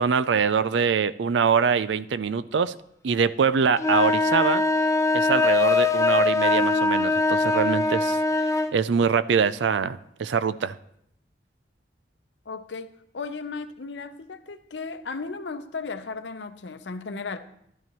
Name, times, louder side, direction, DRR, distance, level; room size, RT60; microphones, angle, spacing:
voice 1, 0.0-2.8 3.0-4.6 5.1-8.2 8.7-10.8, right 6 dB, 85° right, 15 dB, 0.4 m, -23 dB
sound 1, 3.8-8.7, left 3 dB, 15° left, 0.5 m, -22 dB
voice 2, 12.5-12.9 13.1-17.4, left 4 dB, 80° left, 9 dB, 0.7 m, -35 dB
12.5 x 12.0 x 3.0 m, 0.73 s
head